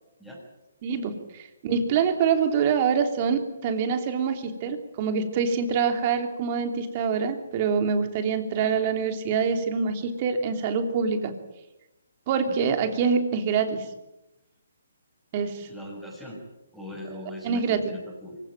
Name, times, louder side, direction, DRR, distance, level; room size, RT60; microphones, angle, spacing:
voice 1, 0.8-11.3 12.3-13.8 15.3-15.7 17.4-17.9, right 6 dB, 35° right, 6 dB, 3.1 m, -25 dB
voice 2, 15.6-16.4 16.7-18.4, left 1 dB, 5° left, -4 dB, 6.5 m, -40 dB
24.5 x 16.5 x 8.9 m, 0.94 s
hypercardioid pair, 155°, 0 cm